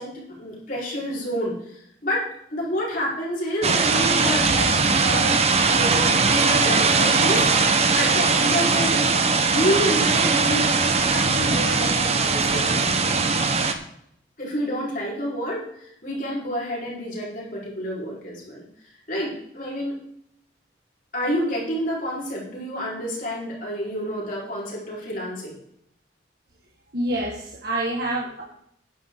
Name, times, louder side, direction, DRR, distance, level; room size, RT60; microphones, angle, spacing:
voice 1, 0.0-7.5 7.9-9.1 9.5-13.1 14.4-18.6 19.1-20.0 21.1-25.6, equal, 45° left, -4 dB, 4.5 m, -29 dB
sound 1, 3.6-13.7, right 4 dB, 35° right, 1.0 m, -20 dB
voice 2, 26.9-28.4, right 1 dB, 60° right, -4 dB, 1.9 m, -27 dB
12.0 x 10.0 x 3.9 m, 0.71 s
head